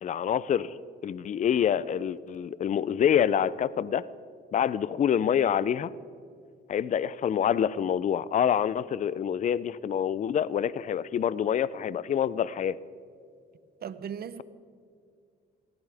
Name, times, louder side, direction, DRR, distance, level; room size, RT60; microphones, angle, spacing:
voice 1, 0.0-0.8 1.0-4.1 4.5-5.9 6.7-12.8, left 9 dB, 40° left, 19 dB, 0.4 m, -26 dB
voice 2, 13.8-14.4, right 8 dB, 50° right, 14 dB, 0.8 m, -37 dB
18.0 x 14.0 x 3.5 m, 2.3 s
cardioid pair, 90°, 20 cm